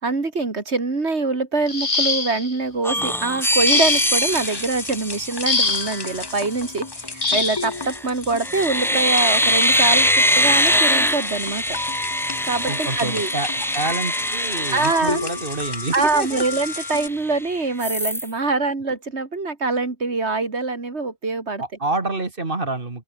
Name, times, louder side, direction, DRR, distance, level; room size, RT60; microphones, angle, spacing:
voice 1, 0.0-11.8 12.4-13.3 14.7-15.2 15.9-21.6, right 3 dB, 80° right, 3.1 m, -24 dB
sound 1, 1.7-2.6 3.7-4.3 5.5-6.0 7.2-7.7 8.9-9.0 9.5-9.8, left 3 dB, 45° left, 2.1 m, -23 dB
sound 2, 2.8-5.9 7.7-8.0 8.4-15.7 16.1-16.2 16.5-17.4 17.8-18.3, equal, ahead, 1.8 m, -22 dB
sound 3, 3.4-17.1, left 3 dB, 25° left, 1.0 m, -32 dB
voice 2, 12.7-16.4 21.6-23.0, right 3 dB, 55° right, 2.7 m, -28 dB
open air
omnidirectional pair, 1.1 m